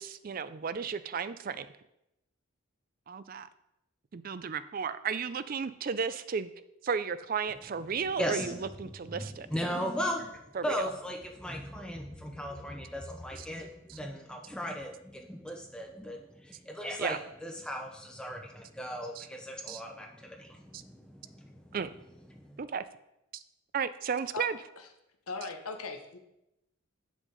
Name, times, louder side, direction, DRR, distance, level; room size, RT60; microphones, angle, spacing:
voice 1, 0.0-1.7 3.1-3.5 4.1-6.5 6.8-9.5 10.5-10.9 13.4-13.5 13.9-14.0 17.0-17.2 19.2-19.3 19.7-19.8 20.7-20.8 21.7-21.9 22.6-22.8 23.3-23.4 23.7-24.6, right 6 dB, 40° right, 14 dB, 0.4 m, -34 dB
voice 2, 8.2-10.3 10.6-21.8 22.3-22.6, equal, 5° left, 2 dB, 0.6 m, -37 dB
voice 3, 25.3-26.2, left 4 dB, 90° left, 5 dB, 1.0 m, -38 dB
9.3 x 6.2 x 4.0 m, 0.86 s
head